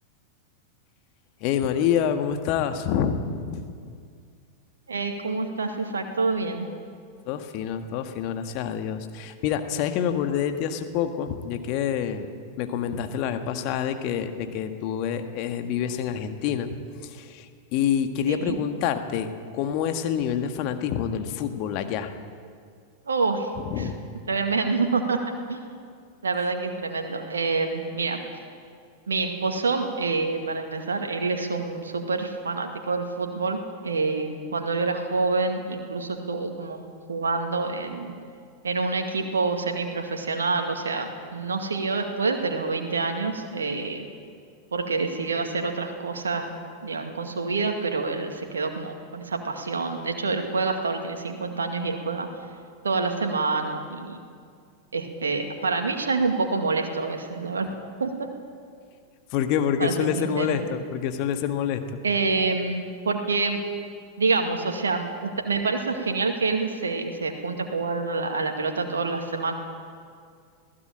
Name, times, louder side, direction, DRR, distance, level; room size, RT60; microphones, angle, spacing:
voice 1, 1.4-3.7 7.3-12.3 12.6-16.7 17.0-22.1 23.7-23.9 59.3-61.8, left 8 dB, 45° left, 7 dB, 1.7 m, -27 dB
voice 2, 4.9-6.7 18.3-18.6 23.1-23.5 23.8-23.9 24.3-25.2 25.5-25.7 26.2-28.2 29.1-38.2 38.6-44.1 44.7-46.5 46.8-52.3 52.8-54.2 54.9-57.7 58.0-58.3 59.8-60.6 62.0-63.6 64.2-69.5, right 4 dB, 70° right, 4 dB, 2.1 m, -27 dB
21.0 x 16.0 x 8.9 m, 2.2 s
figure-of-eight pair, 90°, 0 cm